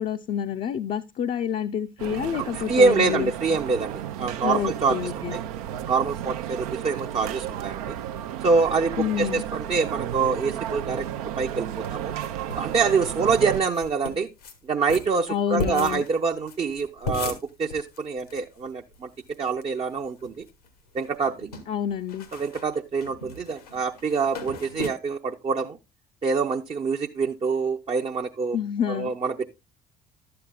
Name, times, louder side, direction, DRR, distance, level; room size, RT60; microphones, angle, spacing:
voice 1, 0.0-3.3 4.4-5.4 9.0-9.4 15.3-16.0 21.7-22.3 28.5-29.1, left 9 dB, 45° left, 0.5 m, -28 dB
sound 1, 2.0-13.6, right 10 dB, 75° right, 0.5 m, -33 dB
voice 2, 2.3-5.4 5.9-8.0 8.4-8.9 9.2-11.1 11.4-12.1 12.5-14.3 14.6-19.1 19.4-20.4 20.9-21.5 22.3-25.8 26.2-28.6 28.9-29.5, right 4 dB, 30° right, 0.6 m, -25 dB
sound 2, 11.8-12.7 13.0-13.1 13.3-13.4 13.7-14.6 14.9-18.4 18.7-18.8 18.9-19.6 20.0-20.7 21.0-24.9, left 3 dB, 80° left, 1.1 m, -36 dB
11.5 x 7.7 x 2.3 m
figure-of-eight pair, 50°, 19 cm